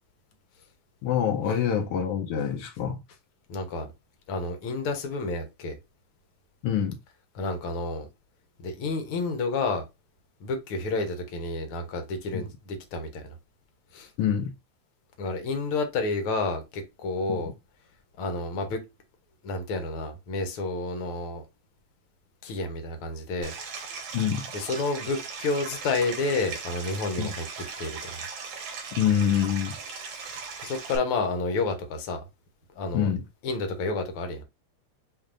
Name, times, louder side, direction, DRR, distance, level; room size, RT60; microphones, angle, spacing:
voice 1, 1.0-3.0 6.6-7.0 12.3-12.4 14.2-14.5 17.3-17.5 24.1-24.4 27.2-27.3 28.9-29.7 32.9-33.2, left 8 dB, 85° left, 1.2 m, -26 dB
voice 2, 3.5-3.9 4.3-5.8 7.3-8.1 8.6-9.8 10.4-13.3 13.9-14.1 15.2-17.5 18.2-18.8 19.4-21.4 22.4-23.5 24.5-27.5 27.8-28.2 30.6-32.2 32.7-33.1 33.4-34.4, left 3 dB, 65° left, 1.5 m, -30 dB
Stream, 23.4-31.0, right 5 dB, 75° right, 2.5 m, -38 dB
6.4 x 3.2 x 2.5 m
omnidirectional pair, 3.5 m